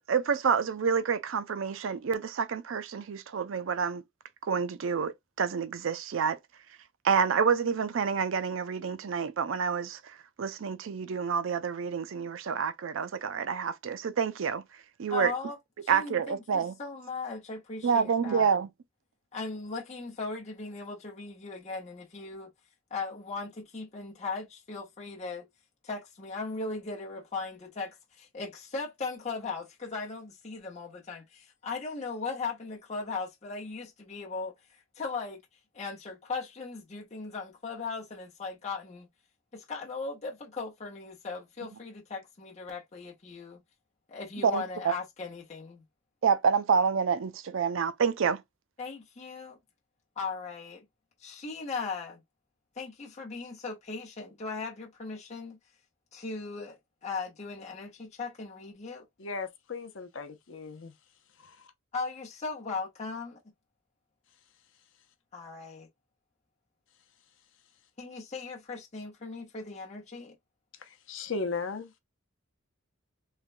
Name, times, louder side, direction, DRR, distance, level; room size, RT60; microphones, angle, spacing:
voice 1, 0.1-4.0 4.4-6.4 7.0-14.6 15.0-15.3 15.9-16.8 17.8-18.7 44.4-44.9 46.2-48.4, right 6 dB, 65° right, 0.4 m, -28 dB
voice 2, 15.1-15.6 15.8-18.5 19.3-22.5 22.9-25.5 25.8-35.4 35.7-39.1 39.5-43.6 44.1-45.8 48.8-49.6 50.2-50.8 51.2-52.2 52.8-55.6 56.1-59.1 61.9-63.4 65.3-65.9 68.0-70.3, left 4 dB, 35° left, 0.9 m, -38 dB
voice 3, 59.2-60.9 71.1-71.9, left 4 dB, 65° left, 0.6 m, -36 dB
3.2 x 2.2 x 2.5 m
head